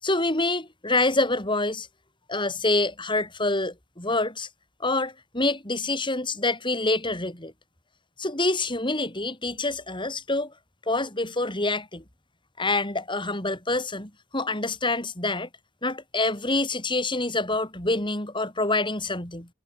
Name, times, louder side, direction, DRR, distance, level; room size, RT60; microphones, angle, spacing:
voice 1, 0.0-1.9 2.3-4.5 4.8-7.5 8.2-10.5 10.9-12.0 12.6-15.5 15.8-19.5, left 2 dB, 20° left, 6.3 m, -26 dB
head